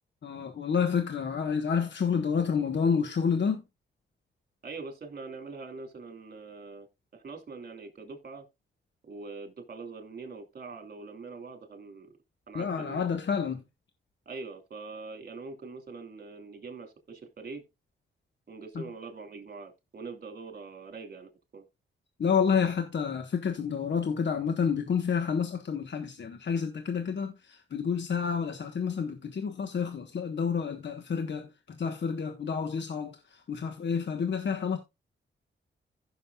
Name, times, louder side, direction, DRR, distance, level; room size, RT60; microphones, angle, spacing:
voice 1, 0.2-3.6 12.5-13.6 18.7-18.8 22.2-34.8, left 6 dB, 60° left, 1.4 m, -29 dB
voice 2, 4.6-6.9 7.1-8.4 9.0-12.1 12.5-13.1 14.2-17.6 18.5-21.6, right 4 dB, 45° right, 2.9 m, -43 dB
15.5 x 6.4 x 2.4 m
cardioid pair, 80°, 21 cm